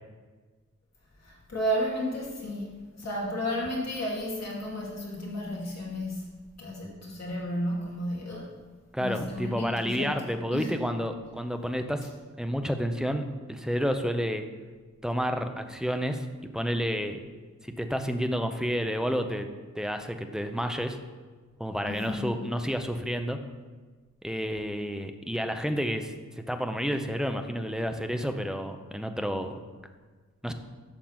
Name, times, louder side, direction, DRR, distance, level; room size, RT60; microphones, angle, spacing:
voice 1, 1.2-2.7 3.0-6.3 6.6-8.5 9.0-10.1 10.5-10.8 21.8-22.3, equal, 60° left, -4 dB, 2.6 m, -32 dB
voice 2, 8.9-12.1 12.4-14.5 15.0-16.3 16.5-17.2 17.6-19.5 19.7-21.0 21.6-23.4 24.2-26.1 26.5-29.5 30.4-30.5, equal, ahead, 6 dB, 0.6 m, -30 dB
11.5 x 3.9 x 7.4 m, 1.4 s
wide cardioid pair, 170°, 30 cm